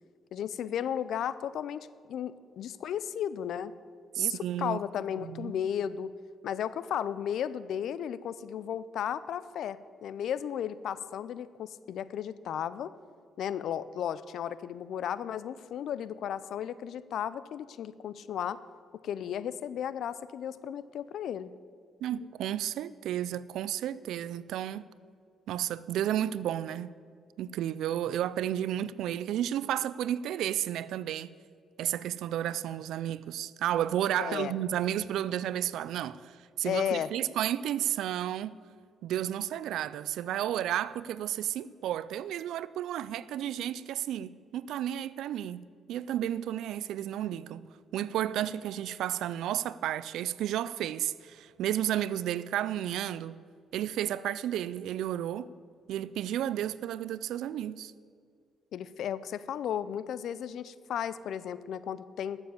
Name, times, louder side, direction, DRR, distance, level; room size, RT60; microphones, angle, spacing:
voice 1, 0.3-3.7 4.2-6.1 6.4-12.9 13.4-18.6 19.0-21.5 34.2-34.5 36.6-37.1 58.7-62.4, left 9 dB, 70° left, 0.5 m, -34 dB
voice 2, 4.1-4.8 5.2-5.5 22.0-24.9 25.5-26.9 27.4-31.3 31.8-38.6 39.0-47.6 47.9-53.4 53.7-55.5 55.9-57.9, right 11 dB, 80° right, 0.4 m, -32 dB
12.5 x 7.2 x 7.6 m
cardioid pair, 90°, 0 cm